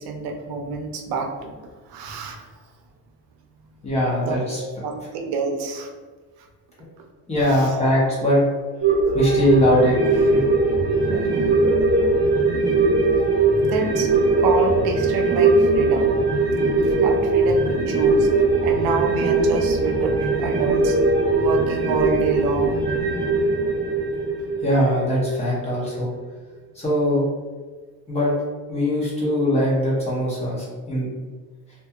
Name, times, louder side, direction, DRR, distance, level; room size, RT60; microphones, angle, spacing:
voice 1, 0.0-1.5 1.9-2.4 4.2-5.9 7.5-7.7 9.0-9.2 11.1-11.7 13.6-14.1 14.4-16.2 16.7-18.3 18.6-21.0 21.4-22.8, right 4 dB, 85° right, 2 dB, 0.5 m, -28 dB
voice 2, 3.8-4.6 7.3-8.4 9.1-10.4 24.6-26.1 26.8-27.2 28.1-28.3 28.7-31.1, left 1 dB, 20° left, -6 dB, 0.6 m, -21 dB
sound 1, 8.8-25.6 25.9-26.0, right 3 dB, 30° right, 0.6 m, -20 dB
2.7 x 2.2 x 2.2 m, 1.4 s
cardioid pair, 175°, 36 cm